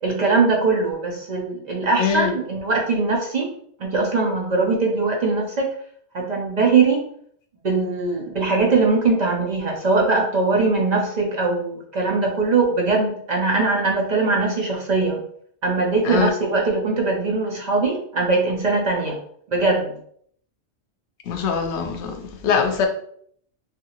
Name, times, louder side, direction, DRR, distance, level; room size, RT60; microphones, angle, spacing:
voice 1, 0.0-3.5 3.8-5.7 6.1-7.0 7.6-15.2 15.6-19.2 19.5-20.0, right 3 dB, 50° right, 0.5 m, -21 dB
voice 2, 2.0-2.3 16.0-16.3 21.3-22.1 22.4-22.9, left 6 dB, 80° left, 0.9 m, -22 dB
2.7 x 2.4 x 2.8 m
omnidirectional pair, 1.2 m